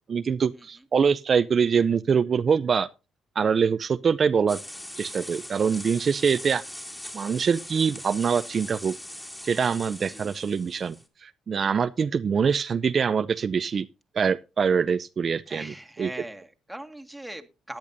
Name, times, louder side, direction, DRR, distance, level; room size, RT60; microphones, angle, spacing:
voice 1, 0.1-2.9 3.4-4.6 5.0-6.6 7.1-9.0 9.4-13.9 14.1-16.1, right 6 dB, 45° right, 0.5 m, -24 dB
sound 1, 4.5-11.0, left 1 dB, 10° left, 2.7 m, -41 dB
voice 2, 15.5-17.8, right 1 dB, 5° right, 1.7 m, -40 dB
17.0 x 10.5 x 2.6 m
cardioid pair, 90°, 0 cm